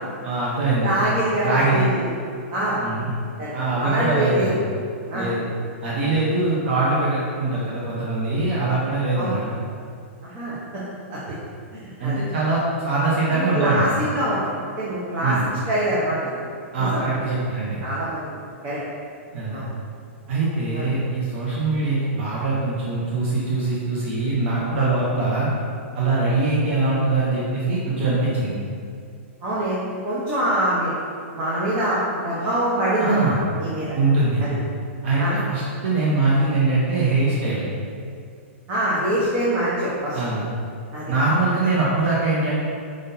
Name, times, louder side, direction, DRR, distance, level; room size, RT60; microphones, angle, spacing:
voice 1, 0.2-0.9 1.4-1.9 2.8-3.1 3.5-4.6 5.1-5.4 5.8-9.4 12.0-13.9 15.2-15.4 16.7-17.8 19.3-19.6 20.3-25.5 25.9-28.5 33.0-33.4 33.9-34.5 35.0-37.6 40.1-40.4 41.1-42.6, right 3 dB, 60° right, -6 dB, 0.9 m, -22 dB
voice 2, 0.8-2.1 2.5-2.8 3.4-3.5 3.8-4.6 5.1-5.3 9.1-9.4 10.2-10.8 11.1-11.2 11.7-12.2 13.3-15.4 15.7-16.4 16.8-17.4 17.8-18.8 19.5-19.7 20.7-20.9 29.4-30.9 31.3-33.9 34.4-34.5 35.2-35.4 38.7-40.2 40.9-41.1, right 1 dB, 30° right, -8 dB, 1.0 m, -25 dB
4.9 x 3.9 x 2.8 m, 2.3 s
hypercardioid pair, 145°, 7 cm